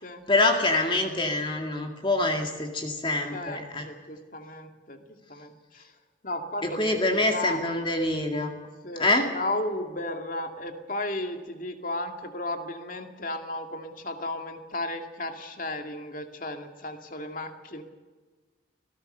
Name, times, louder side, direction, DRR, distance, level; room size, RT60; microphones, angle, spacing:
voice 1, 0.3-3.9 6.6-8.5 9.0-9.3, left 2 dB, 25° left, 3 dB, 2.2 m, -25 dB
voice 2, 3.3-5.0 5.3-5.8 6.2-7.6 8.8-9.1 9.3-17.8, left 2 dB, 45° left, 5 dB, 2.3 m, -34 dB
25.0 x 17.5 x 6.7 m, 1.4 s
head